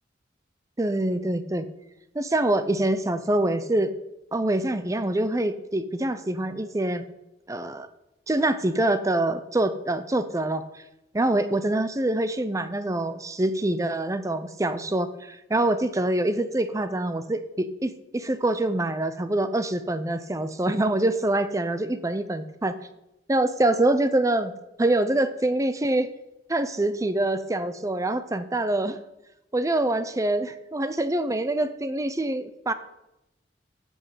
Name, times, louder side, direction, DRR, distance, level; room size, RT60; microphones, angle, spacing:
voice 1, 0.8-1.7 2.1-3.9 4.3-7.1 7.5-7.9 8.3-10.8 11.1-22.8 23.3-24.5 24.8-26.1 26.5-29.0 29.5-32.7, right 1 dB, 20° right, 11 dB, 0.5 m, -25 dB
10.5 x 6.3 x 7.3 m, 0.88 s
head